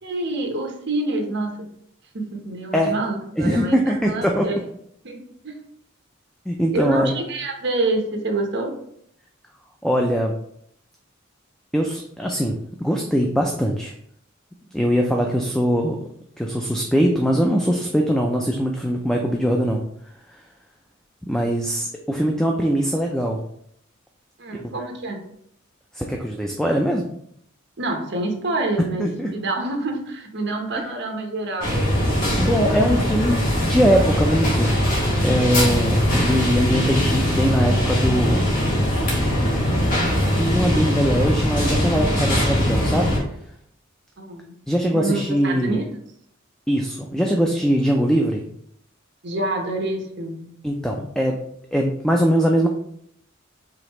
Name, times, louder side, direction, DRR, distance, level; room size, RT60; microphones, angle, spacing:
voice 1, 0.0-1.7 2.1-4.5 5.0-5.6 6.7-8.7 24.4-25.2 27.8-32.2 44.2-44.5 44.9-45.9 49.2-50.5, right 2 dB, 60° right, 3 dB, 0.9 m, -27 dB
voice 2, 3.4-4.5 6.5-7.1 9.8-10.3 11.7-13.9 14.7-16.0 16.4-19.8 21.3-23.4 24.5-24.7 25.9-27.1 28.8-29.3 32.4-34.7 35.0-38.5 40.3-43.2 44.7-45.8 46.7-48.4 50.6-51.4 51.7-52.7, equal, 5° left, 1 dB, 0.4 m, -21 dB
sound 1, 31.6-43.2, equal, 45° left, 1.5 m, -21 dB
5.0 x 3.5 x 3.0 m, 0.70 s
head